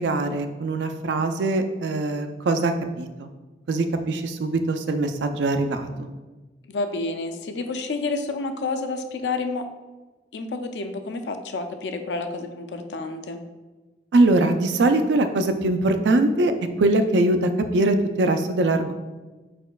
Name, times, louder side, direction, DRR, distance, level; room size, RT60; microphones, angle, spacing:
voice 1, 0.0-3.3 3.7-6.1 14.1-16.5 16.8-18.9, right 2 dB, 85° right, 8 dB, 0.4 m, -22 dB
voice 2, 6.7-9.7 10.3-13.4, left 3 dB, 80° left, 7 dB, 0.4 m, -29 dB
5.0 x 4.2 x 2.2 m, 1.2 s
head